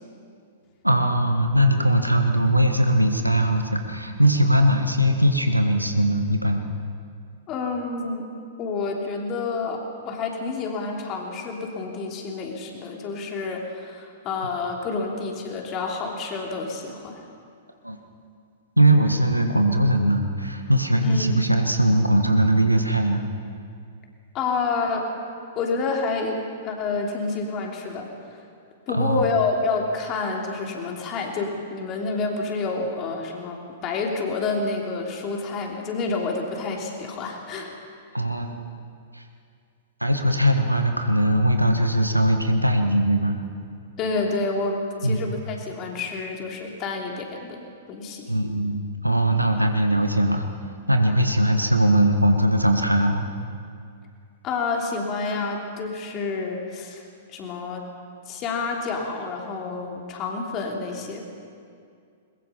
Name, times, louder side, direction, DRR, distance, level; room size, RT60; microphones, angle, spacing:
voice 1, 0.8-6.6 17.8-18.0 18.8-23.2 28.9-29.2 38.1-38.8 39.1-39.2 40.0-43.4 45.0-45.3 48.3-50.5 50.9-53.3, right 1 dB, 90° right, 5 dB, 1.5 m, -20 dB
voice 2, 7.5-8.3 8.6-17.2 21.0-21.5 24.3-25.1 25.5-28.4 28.9-37.7 44.0-48.3 54.4-57.9 58.3-61.2, left 4 dB, 30° left, 1 dB, 3.3 m, -28 dB
21.5 x 21.5 x 5.6 m, 2.3 s
figure-of-eight pair, 105°, 0 cm